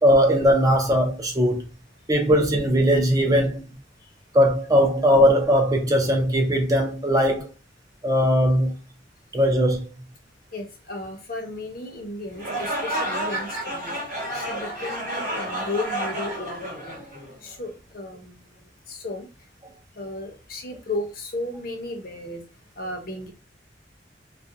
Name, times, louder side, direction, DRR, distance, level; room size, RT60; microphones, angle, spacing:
voice 1, 0.0-1.6 2.1-3.8 4.3-7.5 8.0-8.8 9.3-9.9, equal, 20° right, 0.4 m, -19 dB
voice 2, 10.5-14.0 14.3-17.0 17.4-18.4 18.9-19.3 20.0-22.4 22.8-23.3, left 2 dB, 55° left, 0.6 m, -34 dB
sound 1, 12.3-17.5, right 1 dB, 45° right, 0.9 m, -30 dB
2.3 x 2.1 x 2.6 m
head